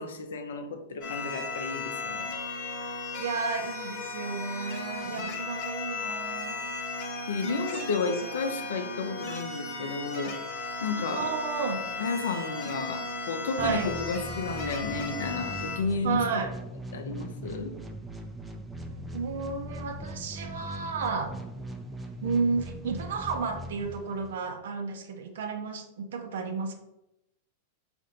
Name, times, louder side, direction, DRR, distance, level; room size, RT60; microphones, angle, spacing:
voice 1, 0.0-2.3 5.1-5.2 7.3-10.4 10.8-11.3 12.0-16.2 16.9-17.8, left 4 dB, 70° left, 0.5 m, -32 dB
sound 1, 1.0-15.8, left 3 dB, 45° left, 1.1 m, -36 dB
voice 2, 3.2-8.3 11.0-11.8 13.6-14.0 16.0-16.5 18.9-21.4 22.2-26.7, right 5 dB, 70° right, 0.7 m, -32 dB
sound 2, 13.6-24.5, right 1 dB, 10° right, 0.6 m, -40 dB
5.1 x 2.6 x 3.8 m
hypercardioid pair, 95°, 0 cm